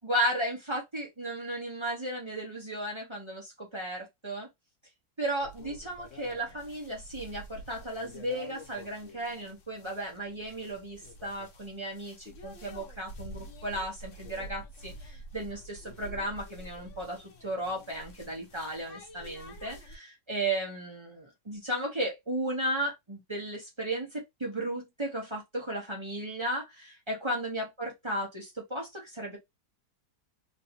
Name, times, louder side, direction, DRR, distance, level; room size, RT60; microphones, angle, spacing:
voice 1, 0.0-4.5 5.2-29.4, right 1 dB, 25° right, 0.8 m, -35 dB
sound 1, 5.4-20.0, equal, 55° left, 1.0 m, -48 dB
3.2 x 2.7 x 2.8 m
omnidirectional pair, 1.8 m